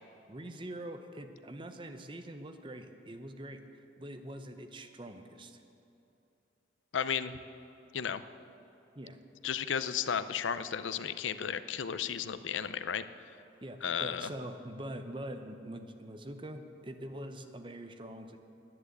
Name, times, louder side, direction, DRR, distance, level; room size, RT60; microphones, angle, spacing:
voice 1, 0.3-5.6 8.9-9.2 13.6-18.4, right 1 dB, 25° right, 7 dB, 0.7 m, -44 dB
voice 2, 6.9-7.3 7.9-8.2 9.4-13.0 13.8-14.3, left 7 dB, 90° left, 13 dB, 0.5 m, -33 dB
11.0 x 10.0 x 8.1 m, 2.8 s
head